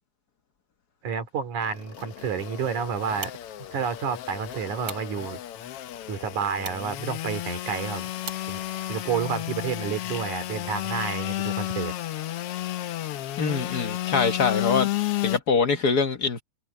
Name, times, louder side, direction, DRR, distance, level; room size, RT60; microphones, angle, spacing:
voice 1, 1.0-3.3 3.7-5.4 6.1-8.1 8.5-8.6 8.9-11.9, right 7 dB, 85° right, 4.0 m, -30 dB
Engine / Sawing, 1.6-15.4, left 14 dB, 70° left, 1.5 m, -32 dB
sound 1, 2.8-9.2, right 4 dB, 40° right, 4.7 m, -45 dB
voice 2, 13.4-14.9 15.2-16.4, left 5 dB, 50° left, 1.2 m, -24 dB
omnidirectional pair, 3.3 m